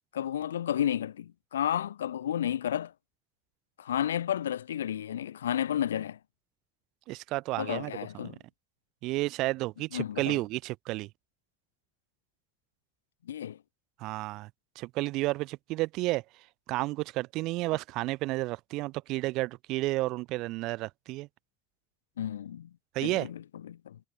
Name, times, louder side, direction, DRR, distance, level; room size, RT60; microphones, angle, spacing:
voice 1, 0.1-2.9 3.8-6.2 7.6-8.4 9.9-10.4 13.3-13.6 22.2-22.7 23.0-24.0, left 10 dB, 90° left, 0.6 m, -32 dB
voice 2, 7.1-8.3 9.0-11.1 14.0-14.5 14.8-16.2 16.7-21.3 22.9-23.3, right 20 dB, 70° right, 0.7 m, -31 dB
hypercardioid pair, 55°, 0 cm